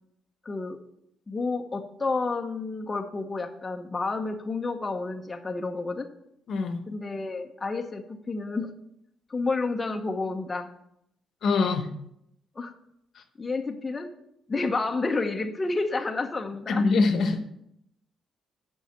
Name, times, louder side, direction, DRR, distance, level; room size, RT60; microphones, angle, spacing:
voice 1, 0.4-0.8 1.3-6.1 6.9-8.8 9.3-10.7 12.6-12.7 13.4-14.1 14.5-16.8, left 3 dB, 25° left, 4 dB, 0.9 m, -30 dB
voice 2, 6.5-6.8 11.4-11.9 13.1-13.2 16.7-17.4, left 4 dB, 65° left, 7 dB, 1.1 m, -24 dB
7.3 x 5.5 x 7.3 m, 0.77 s
cardioid pair, 90°, 0 cm